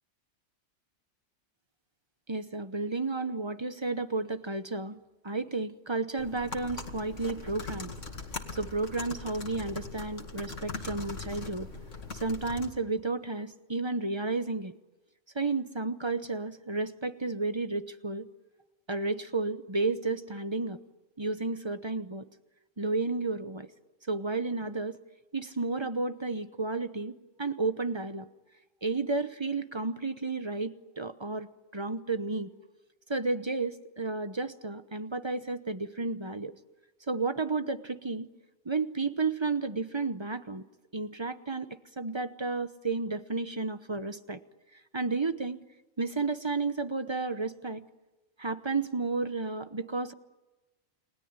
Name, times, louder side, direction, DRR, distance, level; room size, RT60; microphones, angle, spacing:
voice 1, 2.3-7.9 8.5-11.7 12.1-14.7 15.3-18.3 18.9-20.8 21.2-22.3 22.8-23.7 24.1-25.0 25.3-28.3 28.8-32.5 33.1-36.5 37.1-38.3 38.6-40.6 40.9-41.7 42.0-44.4 44.9-45.6 46.0-47.9 48.4-50.1, right 3 dB, 25° right, 11 dB, 0.9 m, -32 dB
sound 1, 6.2-12.7, left 3 dB, 70° left, 2.6 m, -41 dB
30.0 x 20.5 x 9.7 m, 1.1 s
omnidirectional pair, 1.3 m